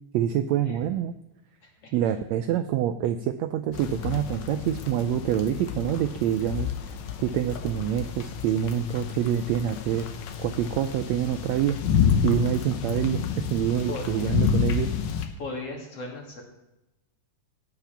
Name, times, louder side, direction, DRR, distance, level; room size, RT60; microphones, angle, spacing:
voice 1, 0.1-1.1 1.9-6.9 7.2-10.0 10.4-11.8 12.2-14.9, right 10 dB, 85° right, 9 dB, 1.5 m, -26 dB
voice 2, 1.6-1.9 13.9-14.4 15.4-16.4, left 2 dB, 50° left, 0 dB, 3.1 m, -37 dB
sound 1, 3.7-15.3, left 7 dB, 70° left, 2.1 m, -29 dB
17.0 x 5.7 x 5.8 m, 0.95 s
omnidirectional pair, 3.6 m